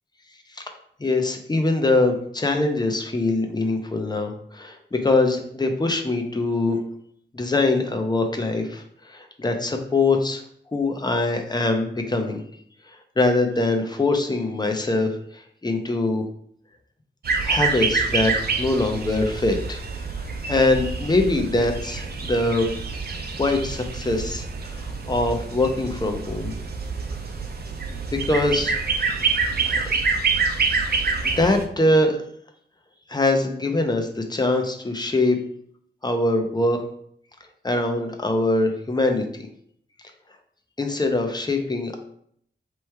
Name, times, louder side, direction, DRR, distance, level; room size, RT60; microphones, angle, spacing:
voice 1, 1.0-6.8 7.3-10.4 10.7-12.4 12.9-15.1 15.6-16.2 17.4-18.3 18.6-19.8 20.5-22.7 23.4-26.5 28.2-28.8 31.2-32.2 33.1-35.4 36.0-36.8 37.6-39.2 40.8-42.0, left 2 dB, 20° left, 4 dB, 0.6 m, -23 dB
sound 1, 17.2-31.7, right 4 dB, 55° right, 0.6 m, -27 dB
3.2 x 3.1 x 4.6 m, 0.66 s
wide cardioid pair, 125°, 19 cm